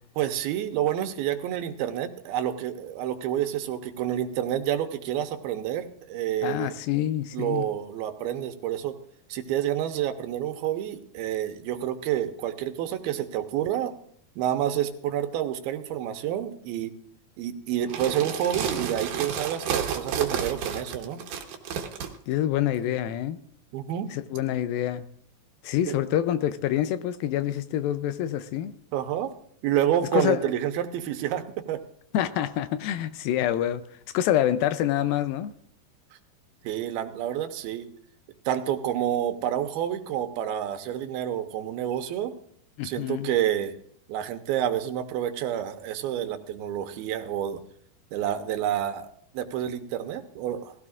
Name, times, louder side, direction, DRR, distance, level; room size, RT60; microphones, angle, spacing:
voice 1, 0.2-6.8 7.3-8.9 9.3-13.9 14.4-16.9 17.4-21.2 23.7-24.1 25.9-26.0 28.9-29.3 29.6-31.8 36.6-37.9 38.5-42.3 42.8-43.8 44.1-47.6 48.1-50.7, right 11 dB, 85° right, 2.7 m, -29 dB
voice 2, 6.4-7.7 22.3-23.4 24.1-25.0 25.6-28.7 30.1-30.4 32.1-33.8 34.1-35.5 42.8-43.3, left 11 dB, 80° left, 2.3 m, -26 dB
sound 1, 17.8-22.1, right 7 dB, 65° right, 2.5 m, -31 dB
19.5 x 15.5 x 2.4 m
omnidirectional pair, 4.3 m